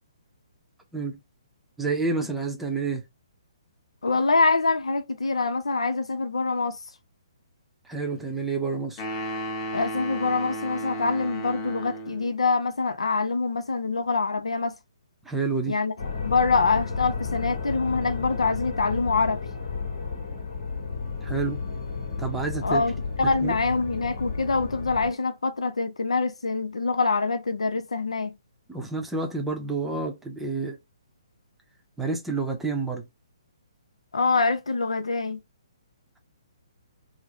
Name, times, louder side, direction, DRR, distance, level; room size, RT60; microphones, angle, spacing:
voice 1, 1.8-3.0 7.8-9.0 15.2-15.8 21.2-21.6 22.2-22.8 23.2-23.6 28.7-30.8 32.0-33.0, right 4 dB, 5° right, 0.6 m, -29 dB
voice 2, 4.0-6.8 9.7-14.7 15.7-15.9 16.2-19.4 22.6-22.9 23.2-28.3 34.1-35.4, left 4 dB, 90° left, 0.6 m, -25 dB
sound 1, 9.0-12.3, right 1 dB, 25° left, 1.0 m, -34 dB
sound 2, 16.0-25.1, left 4 dB, 60° left, 1.6 m, -32 dB
3.3 x 2.0 x 3.6 m
hypercardioid pair, 150°, 3 cm